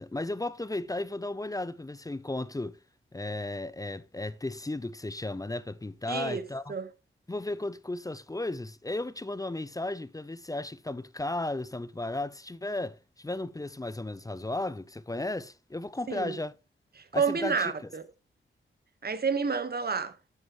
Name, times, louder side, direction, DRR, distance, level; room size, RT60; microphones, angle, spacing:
voice 1, 0.0-2.8 3.1-6.7 7.3-16.5 17.1-17.7, left 2 dB, 15° left, 0.6 m, -35 dB
voice 2, 6.1-6.4 6.7-6.9 16.1-16.3 17.0-18.0 19.0-20.1, right 5 dB, 50° right, 1.4 m, -29 dB
9.2 x 8.9 x 3.1 m
cardioid pair, 85°, 21 cm